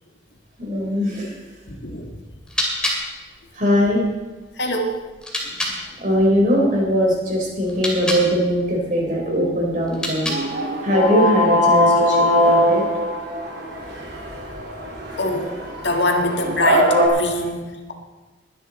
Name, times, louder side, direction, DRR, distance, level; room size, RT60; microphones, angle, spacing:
voice 1, 0.6-1.3 3.6-4.1 6.0-10.3 10.8-12.8, equal, 45° right, -1 dB, 4.3 m, -20 dB
voice 2, 1.7-2.1 4.6-5.0 15.2-15.6 15.8-17.9, left 1 dB, 70° left, 3 dB, 1.8 m, -24 dB
sound 1, 2.2-5.8 7.6-8.3 9.8-10.7, left 1 dB, 5° left, 2.5 m, -29 dB
sound 2, 10.3-17.1, equal, 60° right, 3.3 m, -21 dB
21.5 x 9.8 x 4.3 m, 1.2 s
head